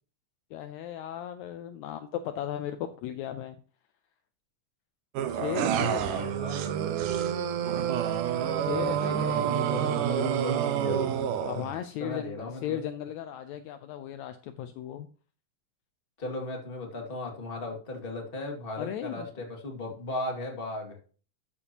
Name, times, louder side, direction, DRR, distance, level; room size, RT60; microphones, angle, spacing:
voice 1, 0.5-3.6 5.3-6.1 8.6-9.2 11.5-15.1 18.8-19.3, left 10 dB, 80° left, 9 dB, 1.8 m, -36 dB
sound 1, 5.2-11.8, right 9 dB, 90° right, 2.6 m, -28 dB
voice 2, 6.1-6.6 7.6-11.4 12.0-12.8 16.2-21.0, left 2 dB, 20° left, 0 dB, 1.9 m, -37 dB
13.0 x 7.0 x 2.9 m, 0.40 s
omnidirectional pair, 3.6 m